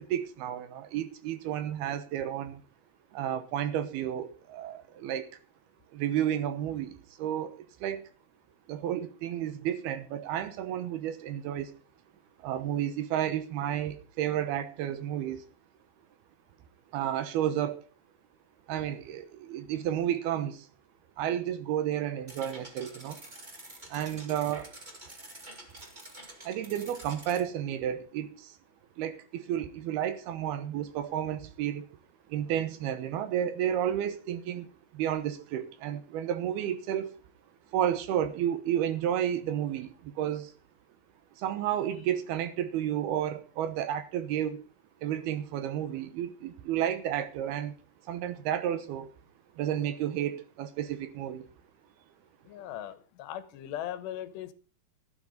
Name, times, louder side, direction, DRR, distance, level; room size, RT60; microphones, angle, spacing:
voice 1, 0.0-2.6 3.1-5.3 5.9-8.0 8.7-11.8 12.4-15.4 16.9-17.8 18.7-20.7 21.2-23.2 23.9-24.7 26.4-28.5 29.0-31.9 32.3-37.1 37.7-40.5 41.4-44.6 45.0-47.7 48.1-49.1 49.6-51.5, right 10 dB, 75° right, 2.8 m, -31 dB
sound 1, 22.3-27.4, right 1 dB, 30° right, 0.8 m, -48 dB
voice 2, 52.5-54.5, left 11 dB, 85° left, 3.2 m, -39 dB
12.5 x 11.5 x 5.1 m
omnidirectional pair, 4.9 m